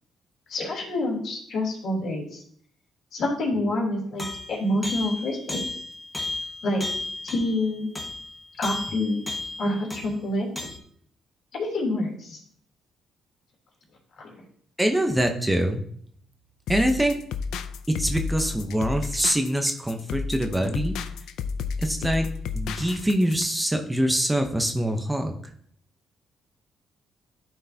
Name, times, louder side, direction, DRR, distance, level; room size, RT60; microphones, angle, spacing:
voice 1, 0.5-2.4 3.1-5.6 6.6-6.8 7.2-7.9 8.6-9.2 9.6-10.7 11.5-12.4 14.2-14.3, left 1 dB, 60° left, -2 dB, 3.0 m, -27 dB
sound 1, 4.2-10.2 10.6-10.8, left 2 dB, 15° left, 1.1 m, -34 dB
voice 2, 14.8-15.8 16.7-17.2 17.9-20.9 21.8-22.3 22.5-25.3, right 1 dB, 10° right, 5 dB, 0.8 m, -24 dB
sound 2, 16.7-23.5, left 5 dB, 85° left, 0.4 m, -32 dB
11.0 x 4.6 x 2.8 m, 0.63 s
cardioid pair, 90°, 0 cm